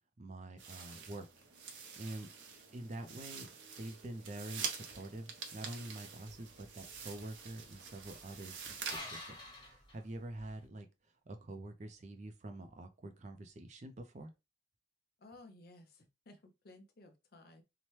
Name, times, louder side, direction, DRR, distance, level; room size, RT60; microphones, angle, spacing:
voice 1, 0.2-1.3 2.0-2.3 2.7-3.5 3.8-9.4 9.7-10.9 11.3-14.3, right 1 dB, 40° right, 0.4 m, -46 dB
sound 1, 0.6-9.0, right 6 dB, 85° right, 0.7 m, -46 dB
sound 2, 6.3-10.6, left 1 dB, 25° left, 1.2 m, -51 dB
voice 2, 15.2-17.6, left 2 dB, 55° left, 0.6 m, -57 dB
2.8 x 2.1 x 3.1 m
head